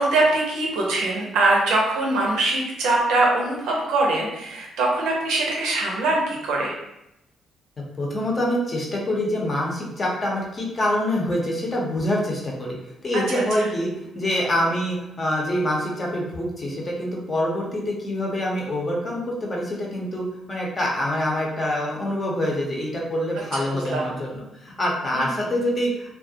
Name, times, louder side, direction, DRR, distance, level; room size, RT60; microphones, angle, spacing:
voice 1, 0.0-6.8 13.3-13.7 23.5-24.1 25.1-25.5, right 2 dB, 90° right, -1 dB, 0.6 m, -23 dB
voice 2, 8.0-12.8 13.0-26.2, left 1 dB, 35° left, -2 dB, 0.7 m, -25 dB
2.3 x 2.1 x 2.7 m, 0.87 s
cardioid pair, 90°, 0 cm